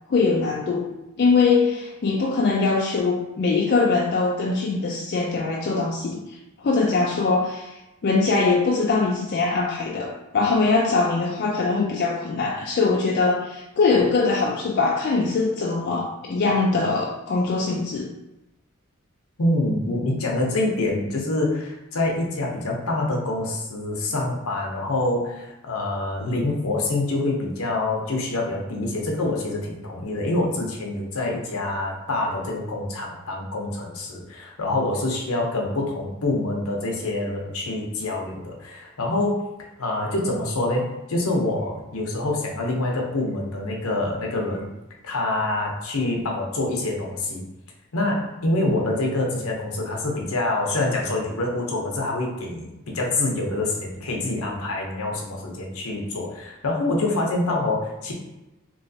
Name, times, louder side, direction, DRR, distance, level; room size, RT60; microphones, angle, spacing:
voice 1, 0.1-7.7 8.0-18.1, left 4 dB, 50° left, -1 dB, 0.3 m, -22 dB
voice 2, 19.4-39.4 39.8-40.8 41.1-44.7 45.0-47.4 47.9-58.1, left 2 dB, 75° left, 0 dB, 0.7 m, -26 dB
3.1 x 3.0 x 2.7 m, 0.98 s
head